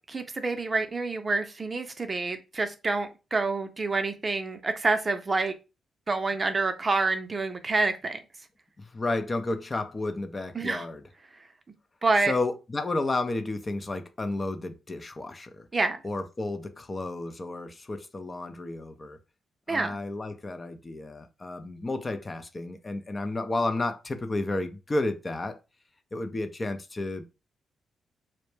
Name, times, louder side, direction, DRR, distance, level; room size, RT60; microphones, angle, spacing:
voice 1, 0.1-5.5 6.1-8.2 10.5-10.8 12.0-12.3 15.7-16.0 19.7-19.9, right 3 dB, 40° right, 0.5 m, -27 dB
voice 2, 8.8-11.0 12.2-15.7 16.0-19.2 19.7-25.6 26.1-27.3, left 2 dB, 35° left, 0.5 m, -32 dB
2.1 x 2.1 x 3.1 m
supercardioid pair, 45°, 0 cm